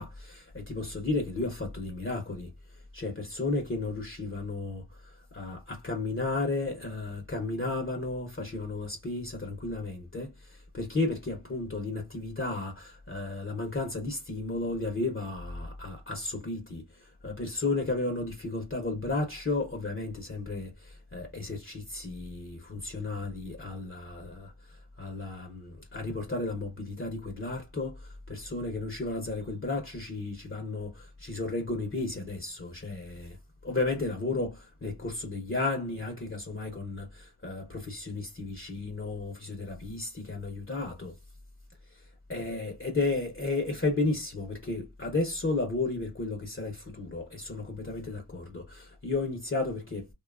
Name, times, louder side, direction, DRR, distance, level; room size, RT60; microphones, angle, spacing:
voice 1, 0.0-33.4 33.6-41.1 41.9-50.1, left 2 dB, 30° left, 0.7 m, -33 dB
2.7 x 2.2 x 2.3 m
wide cardioid pair, 60°, 45 cm